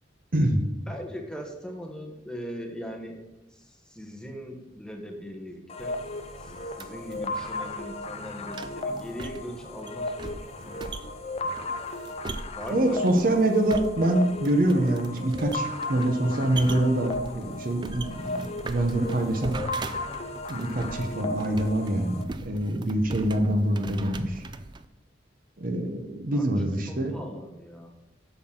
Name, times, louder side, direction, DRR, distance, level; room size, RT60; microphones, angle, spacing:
voice 1, 0.3-0.6 12.7-19.6 20.5-24.4 25.6-27.2, right 1 dB, 50° right, 4 dB, 0.8 m, -25 dB
voice 2, 0.9-3.2 3.5-6.0 6.4-11.1 11.4-11.6 12.5-13.2 26.3-26.5 26.9-27.9, equal, 5° left, 2 dB, 0.9 m, -40 dB
sound 1, 5.7-22.2, left 2 dB, 35° left, 0.5 m, -35 dB
sound 2, 5.8-24.9, right 3 dB, 25° right, 0.3 m, -41 dB
8.2 x 6.1 x 3.7 m, 1.0 s
head